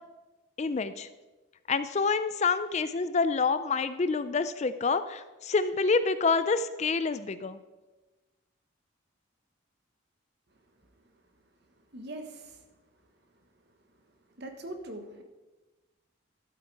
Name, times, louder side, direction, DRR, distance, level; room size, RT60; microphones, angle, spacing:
voice 1, 0.6-1.1 1.7-7.6, left 4 dB, 30° left, 12 dB, 0.4 m, -27 dB
voice 2, 11.9-12.6 14.4-15.2, right 1 dB, 55° right, 6 dB, 1.3 m, -41 dB
12.0 x 8.2 x 4.7 m, 1.2 s
head